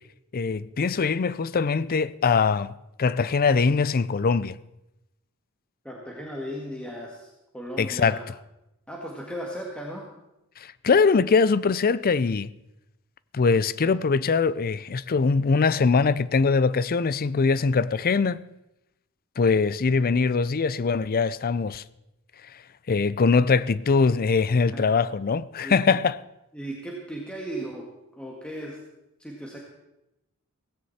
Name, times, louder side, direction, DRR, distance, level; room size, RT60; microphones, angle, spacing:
voice 1, 0.3-2.7 3.0-4.6 7.8-8.2 10.6-12.5 13.3-18.4 19.4-21.8 22.9-26.2, left 4 dB, 40° left, 0.5 m, -22 dB
voice 2, 5.8-8.3 8.9-10.0 24.7-25.0 25.6-26.0 26.5-27.9 28.2-28.8 29.2-29.6, equal, 5° left, 2.0 m, -36 dB
17.0 x 16.0 x 4.3 m
head